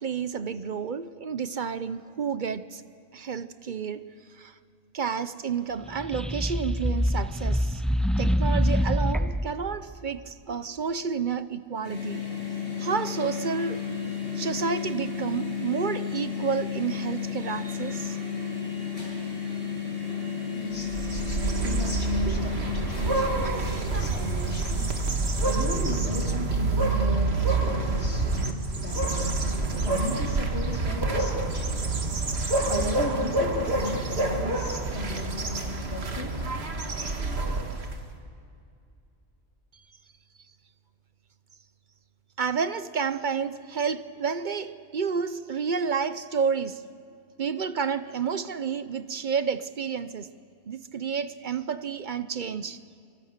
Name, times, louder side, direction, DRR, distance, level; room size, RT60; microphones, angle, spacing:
voice 1, 0.0-2.8 3.1-4.5 4.9-7.8 8.2-12.3 12.8-13.9 14.3-18.2 42.4-46.8 47.4-50.3 50.7-52.8, right 6 dB, 50° right, 0.8 m, -30 dB
sound 1, 5.8-9.5, equal, ahead, 0.5 m, -25 dB
sound 2, 11.8-25.6, left 6 dB, 60° left, 8.0 m, -33 dB
voice 2, 20.5-24.9 25.4-31.9 32.6-36.4, left 1 dB, 90° left, 3.9 m, -36 dB
sound 3, 20.8-38.1, right 2 dB, 70° right, 2.0 m, -27 dB
25.0 x 24.5 x 6.6 m
omnidirectional pair, 1.1 m